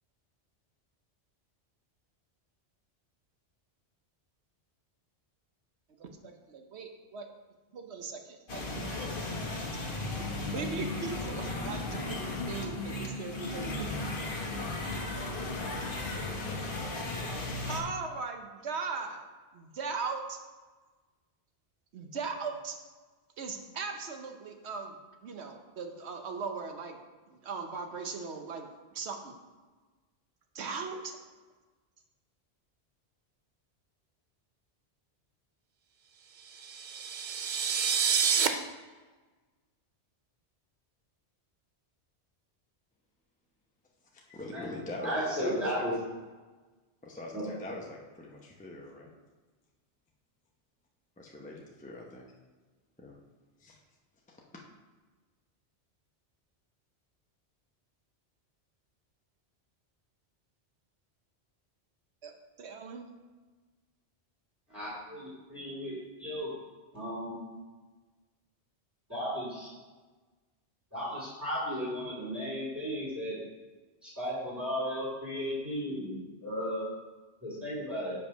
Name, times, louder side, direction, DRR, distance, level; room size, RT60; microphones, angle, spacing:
voice 1, 6.0-7.3 7.7-9.6 10.2-13.9 16.3-16.7 17.2-19.2 19.5-20.4 21.9-22.8 23.4-24.9 25.2-27.0 27.3-28.7 28.9-29.4 30.5-31.2 62.2-63.1, right 4 dB, 75° right, 5 dB, 1.1 m, -39 dB
sound 1, 8.5-17.8, left 2 dB, 55° left, 1.2 m, -35 dB
sound 2, 36.6-38.5, right 7 dB, 55° right, 0.6 m, -28 dB
voice 2, 44.1-45.9 47.0-49.1 51.2-52.3 53.0-53.2 53.6-53.8 54.3-54.4, left 1 dB, 10° left, -2 dB, 0.7 m, -43 dB
voice 3, 45.0-45.9 47.3-47.4 64.7-66.5 66.9-67.4 69.1-69.7 70.9-73.3 74.0-76.2 76.4-76.9 77.4-78.1, equal, 15° right, -12 dB, 2.8 m, -35 dB
6.9 x 5.5 x 5.4 m, 1.3 s
omnidirectional pair, 1.1 m